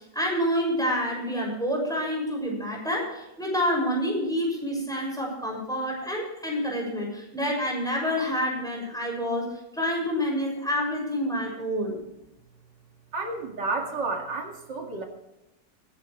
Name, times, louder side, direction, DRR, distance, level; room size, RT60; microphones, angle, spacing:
voice 1, 0.1-12.0, equal, ahead, -1 dB, 6.4 m, -28 dB
voice 2, 13.1-15.0, right 3 dB, 85° right, 2 dB, 2.9 m, -31 dB
22.5 x 11.5 x 3.2 m, 0.91 s
omnidirectional pair, 1.8 m